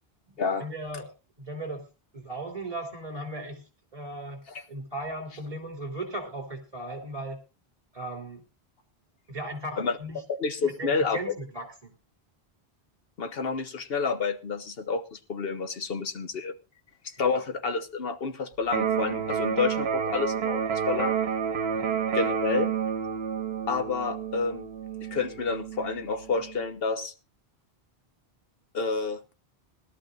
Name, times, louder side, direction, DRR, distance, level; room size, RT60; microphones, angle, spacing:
voice 1, 0.3-1.1 1.4-1.8 2.1-3.6 3.9-4.4 4.7-7.4 7.9-8.4 9.3-10.2 10.6-11.9 21.7-21.9, right 1 dB, 35° right, 3 dB, 3.7 m, -37 dB
voice 2, 10.4-11.2 13.2-16.6 17.0-21.2 22.1-22.7 23.7-24.7 25.1-27.1 28.7-29.2, left 4 dB, 70° left, 8 dB, 1.3 m, -29 dB
Electric guitar, 18.7-26.7, right 7 dB, 80° right, 1.1 m, -30 dB
20.0 x 12.5 x 2.5 m, 0.29 s
omnidirectional pair, 1.0 m